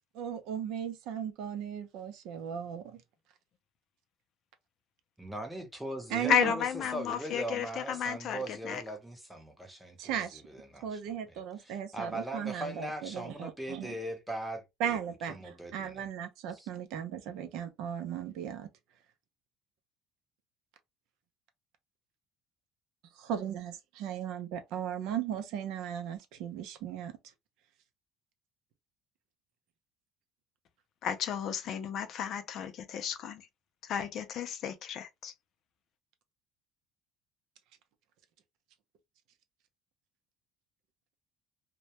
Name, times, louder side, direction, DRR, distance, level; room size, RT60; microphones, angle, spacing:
voice 1, 0.1-3.0 6.1-6.5 10.0-10.4 10.8-14.0 14.8-18.7 23.3-27.1, right 9 dB, 70° right, 0.5 m, -36 dB
voice 2, 5.2-6.6 6.9-11.0 11.3-15.0 15.3-16.0 16.5-16.7, right 1 dB, 5° right, 0.6 m, -40 dB
voice 3, 6.3-9.0 31.0-33.4 33.8-35.3, left 8 dB, 50° left, 0.4 m, -33 dB
2.2 x 2.1 x 2.7 m
cardioid pair, 145°, 0 cm